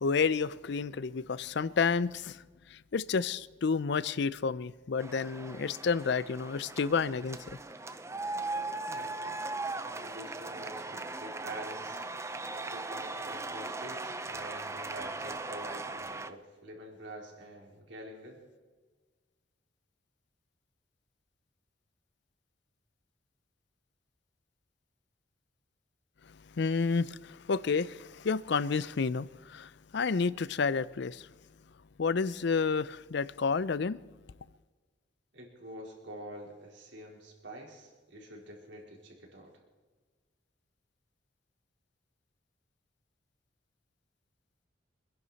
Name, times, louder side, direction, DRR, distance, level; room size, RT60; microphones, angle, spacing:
voice 1, 0.0-2.4 2.7-7.4 26.6-31.3 32.0-34.0, left 5 dB, 60° left, 0.5 m, -30 dB
sound 1, 5.0-16.3, right 3 dB, 15° right, 0.6 m, -39 dB
voice 2, 8.9-9.4 9.9-12.0 12.5-18.4 35.3-39.5, right 1 dB, 65° right, 3.9 m, -47 dB
25.5 x 11.0 x 4.1 m
head